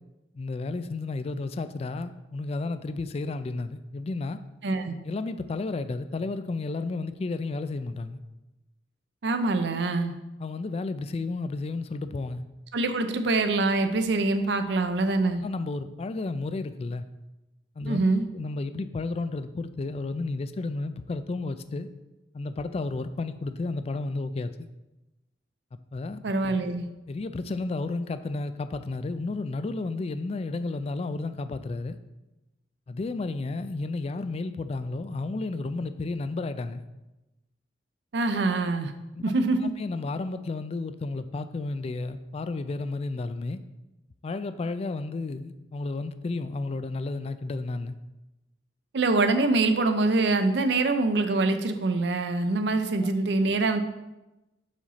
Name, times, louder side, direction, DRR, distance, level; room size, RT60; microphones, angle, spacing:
voice 1, 0.3-4.4 5.1-8.2 10.4-12.4 15.4-17.0 17.8-18.0 18.3-21.9 22.3-24.7 25.9-26.2 27.1-32.0 32.9-36.8 39.1-39.2 39.8-43.6 44.2-48.0, left 3 dB, 35° left, 11 dB, 0.3 m, -32 dB
voice 2, 4.6-4.9 9.2-10.1 12.7-15.4 17.8-18.2 26.2-26.9 38.1-38.9 39.2-39.7 48.9-53.8, right 3 dB, 70° right, 8 dB, 0.6 m, -24 dB
5.0 x 4.0 x 5.6 m, 1.0 s
head